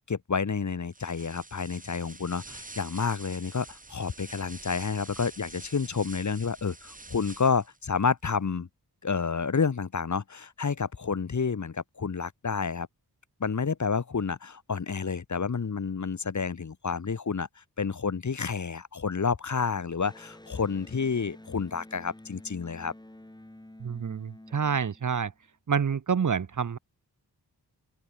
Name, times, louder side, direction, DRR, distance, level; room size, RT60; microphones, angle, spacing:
voice 1, 0.1-8.7 9.0-12.9 13.4-22.9, left 5 dB, 45° left, 1.1 m, -30 dB
sound 1, 0.9-7.8, right 3 dB, 20° right, 1.1 m, -47 dB
Electric guitar, 20.0-25.5, left 1 dB, 10° left, 2.0 m, -50 dB
voice 2, 23.8-25.3 25.7-26.8, right 6 dB, 45° right, 0.8 m, -28 dB
open air
wide cardioid pair, 80°, 42 cm